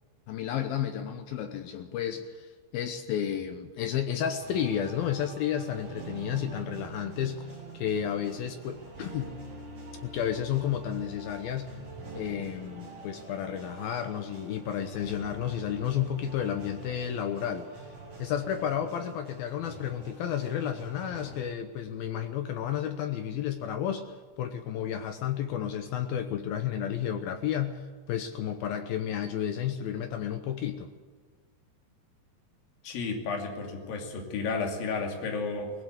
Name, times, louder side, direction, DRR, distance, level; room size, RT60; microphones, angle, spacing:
voice 1, 0.3-2.5 2.7-7.4 7.7-9.3 10.0-11.7 12.2-17.9 18.2-24.1 24.4-27.8 28.1-30.9, left 9 dB, 75° left, 7 dB, 2.2 m, -32 dB
sound 1, 4.4-21.4, right 2 dB, 35° right, 7.7 m, -46 dB
voice 2, 32.8-35.7, left 4 dB, 55° left, 2 dB, 4.0 m, -32 dB
20.0 x 17.0 x 8.1 m, 1.5 s
omnidirectional pair, 5.4 m